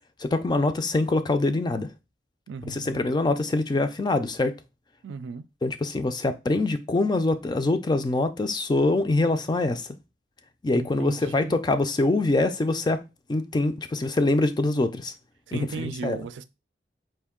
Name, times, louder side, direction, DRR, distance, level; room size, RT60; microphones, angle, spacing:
voice 1, 0.2-1.9 2.7-4.6 5.6-9.9 10.6-13.0 13.3-15.1 15.5-16.2, left 2 dB, 25° left, 0.4 m, -24 dB
voice 2, 2.5-3.1 5.0-5.4 10.7-11.6 15.5-16.4, right 4 dB, 90° right, 0.4 m, -36 dB
4.4 x 2.6 x 3.6 m
head